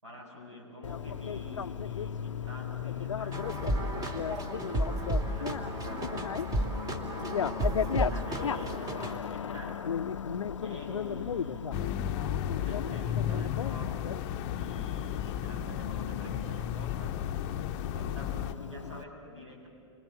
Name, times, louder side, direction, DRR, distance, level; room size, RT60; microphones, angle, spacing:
voice 1, 0.0-4.4 5.0-6.1 7.7-8.8 9.3-9.9 10.6-11.8 12.5-14.1 14.5-17.2 17.9-19.7, left 1 dB, 80° right, 0 dB, 7.9 m, -46 dB
Bicycle, 0.8-19.0, left 7 dB, 80° left, 0.6 m, -36 dB
sound 1, 3.3-9.2, right 1 dB, 25° right, 2.7 m, -33 dB
sound 2, 11.7-18.5, left 10 dB, 45° left, 0.7 m, -33 dB
29.5 x 25.0 x 7.4 m, 2.2 s
figure-of-eight pair, 100°, 16 cm